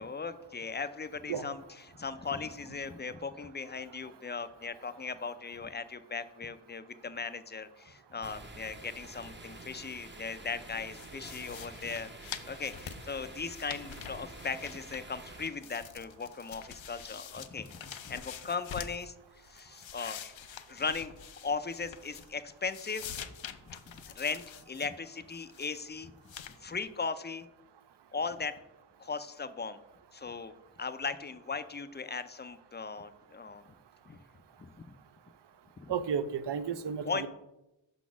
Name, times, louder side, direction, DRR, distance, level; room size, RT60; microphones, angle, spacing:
voice 1, 0.0-12.1 12.5-17.7 18.0-19.1 19.4-20.3 20.7-21.1 21.4-23.1 23.7-23.8 24.1-26.1 26.6-27.5 28.1-28.5 29.0-29.8 30.1-33.6 34.1-34.2 34.6-35.0 35.8-35.9 37.1-37.3, left 4 dB, 25° left, 12 dB, 0.4 m, -38 dB
sound 1, 8.2-15.5, right 2 dB, 25° right, 0.7 m, -48 dB
sound 2, 10.9-15.2 15.5-19.1 19.5-22.4 22.7-24.9 25.3-25.8 26.3-26.6, left 8 dB, 75° left, 0.5 m, -46 dB
voice 2, 35.9-37.3, right 7 dB, 65° right, 14 dB, 0.5 m, -33 dB
5.7 x 4.0 x 6.1 m, 0.92 s
wide cardioid pair, 70°, 46 cm